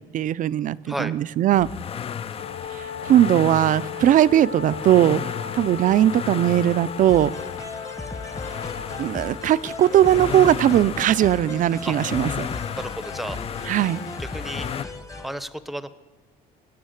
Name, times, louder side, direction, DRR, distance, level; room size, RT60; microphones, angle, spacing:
voice 1, 0.0-1.7 2.7-5.2 5.5-7.3 9.0-12.5 13.7-14.0, right 12 dB, 50° right, 17 dB, 0.4 m, -19 dB
sound 1, 1.5-14.9, left 8 dB, 35° left, 0.4 m, -34 dB
Wind instrument woodwind instrument, 2.3-10.4, left 6 dB, 80° left, 2.2 m, -37 dB
sound 2, 7.1-15.3, left 2 dB, 20° left, 1.1 m, -37 dB
voice 2, 12.8-13.4 14.2-14.7 15.2-15.9, right 1 dB, ahead, 13 dB, 0.7 m, -32 dB
19.0 x 7.9 x 8.0 m, 1.3 s
cardioid pair, 110°, 17 cm